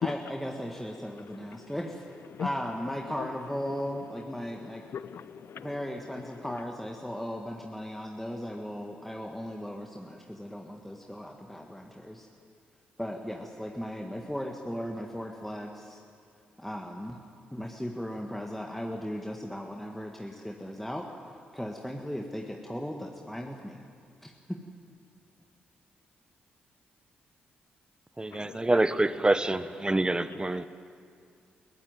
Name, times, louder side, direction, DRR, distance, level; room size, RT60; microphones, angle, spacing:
voice 1, 0.0-2.0 2.4-4.9 5.6-12.3 13.0-16.0 16.6-17.2 17.5-21.1 21.5-23.9 24.2-24.6, equal, 5° left, 1 dB, 1.8 m, -37 dB
voice 2, 4.9-5.7 29.8-29.9 30.3-30.7, left 8 dB, 60° left, 15 dB, 0.8 m, -36 dB
voice 3, 28.4-30.7, right 2 dB, 20° right, 14 dB, 1.0 m, -26 dB
21.0 x 16.0 x 9.2 m, 2.4 s
hypercardioid pair, 40°, 5 cm